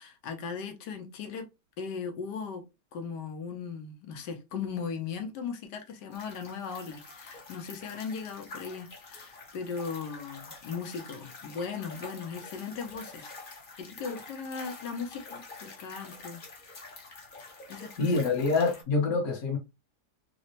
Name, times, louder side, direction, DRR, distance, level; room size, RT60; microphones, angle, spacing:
voice 1, 0.0-1.5 1.8-2.6 2.9-13.3 13.8-16.8 17.7-18.1, left 5 dB, 85° left, 1.4 m, -38 dB
sound 1, 6.1-18.8, left 3 dB, 40° left, 0.8 m, -47 dB
voice 2, 18.0-19.6, left 3 dB, 60° left, 1.5 m, -26 dB
4.0 x 2.1 x 2.7 m
omnidirectional pair, 1.8 m